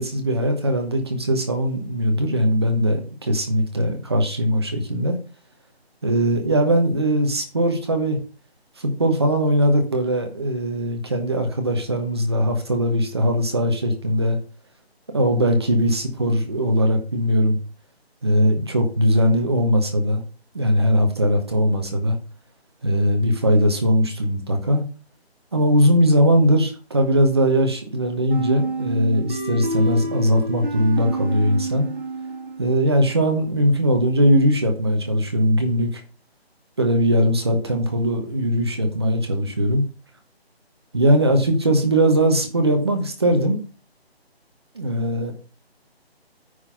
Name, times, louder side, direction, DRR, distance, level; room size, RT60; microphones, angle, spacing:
voice 1, 0.0-5.2 6.0-8.2 8.8-14.4 15.1-17.6 18.2-20.2 20.5-22.2 22.8-24.8 25.5-31.9 32.6-35.9 36.8-39.8 40.9-43.6 44.7-45.3, equal, 25° right, 5 dB, 1.0 m, -20 dB
sound 1, 28.3-33.0, right 2 dB, 55° right, 4.3 m, -28 dB
9.5 x 4.1 x 5.6 m, 0.36 s
figure-of-eight pair, 170°, 32 cm